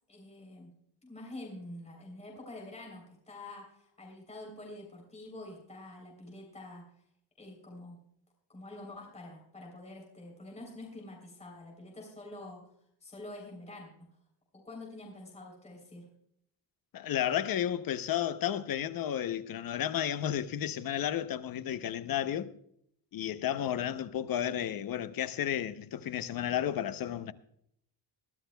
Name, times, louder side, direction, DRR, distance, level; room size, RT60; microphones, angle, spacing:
voice 1, 0.1-0.7 1.0-6.8 7.4-8.0 8.5-12.6 13.0-13.9 14.6-16.1, left 2 dB, 15° left, 3.3 m, -47 dB
voice 2, 16.9-22.5 23.1-27.3, left 10 dB, 50° left, 0.7 m, -32 dB
22.5 x 13.0 x 2.2 m
cardioid pair, 165°, 45 cm